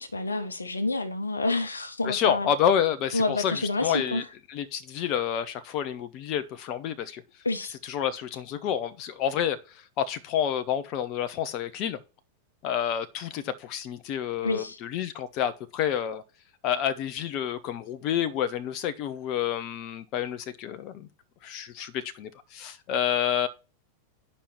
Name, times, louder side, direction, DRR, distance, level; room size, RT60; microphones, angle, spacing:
voice 1, 0.0-2.5 3.1-4.2 7.4-7.7 14.4-14.8, left 2 dB, 80° left, 1.0 m, -28 dB
voice 2, 2.0-4.2 4.5-7.2 7.8-9.6 10.0-12.0 12.6-16.2 16.6-21.1 21.4-23.5, left 9 dB, 40° left, 0.9 m, -29 dB
10.0 x 5.5 x 4.5 m
figure-of-eight pair, 90°, 0 cm